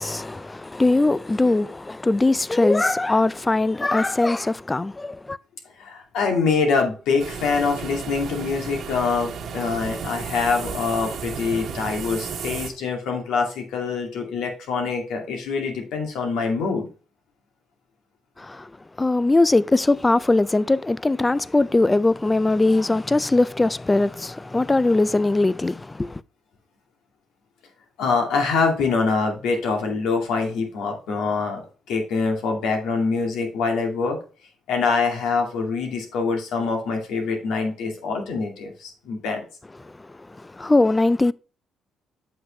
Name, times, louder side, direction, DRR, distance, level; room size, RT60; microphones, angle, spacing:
voice 1, 0.0-5.4 18.4-18.7 19.0-26.2 39.8-39.9 40.3-41.3, left 2 dB, 15° left, 0.4 m, -21 dB
voice 2, 5.8-16.9 28.0-31.6 31.9-34.2 34.7-39.5, left 4 dB, 85° left, 2.3 m, -24 dB
sound 1, 7.2-12.7, right 6 dB, 65° right, 1.3 m, -33 dB
7.8 x 6.4 x 3.2 m
cardioid pair, 90°, 0 cm